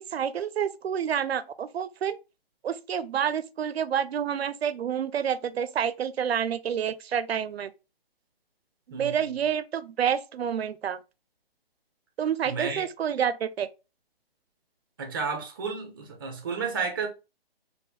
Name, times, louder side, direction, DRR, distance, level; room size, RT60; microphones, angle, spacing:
voice 1, 0.1-2.2 2.6-7.7 8.9-11.0 12.2-13.7, right 8 dB, 80° right, 0.5 m, -28 dB
voice 2, 8.9-9.4 12.5-12.9 15.0-17.1, right 5 dB, 20° right, 0.5 m, -32 dB
3.3 x 2.5 x 2.4 m
hypercardioid pair, 155°, 30 cm